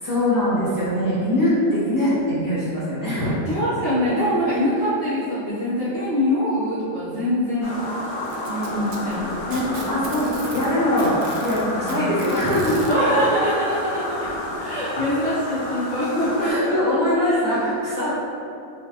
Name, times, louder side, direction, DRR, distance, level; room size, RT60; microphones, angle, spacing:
voice 1, 0.0-3.3 9.5-12.9 16.4-18.1, left 1 dB, 15° left, -12 dB, 0.6 m, -22 dB
voice 2, 3.5-7.8 8.4-9.3 11.7-12.0 12.9-14.3 14.6-16.7 17.2-17.7 18.1-18.2, equal, 50° right, -13 dB, 0.8 m, -24 dB
sound 1, 7.6-16.5, left 1 dB, 70° left, 0.6 m, -30 dB
Packing tape duct tape, 8.3-10.7 11.0-12.9 14.1-14.2 14.7-14.8 15.6-15.7, right 4 dB, 80° right, 1.2 m, -39 dB
4.3 x 2.3 x 2.9 m, 2.6 s
omnidirectional pair, 1.9 m